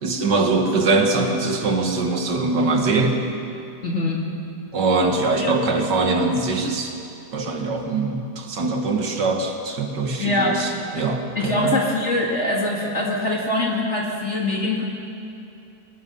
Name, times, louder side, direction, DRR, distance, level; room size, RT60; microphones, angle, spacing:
voice 1, 0.0-3.2 4.7-6.9 7.3-11.8, right 3 dB, 80° right, 3 dB, 2.4 m, -22 dB
voice 2, 3.8-4.3 5.4-5.5 10.2-10.6 11.3-14.9, left 2 dB, 40° left, -3 dB, 2.6 m, -23 dB
25.0 x 19.5 x 5.6 m, 2.7 s
omnidirectional pair, 1.8 m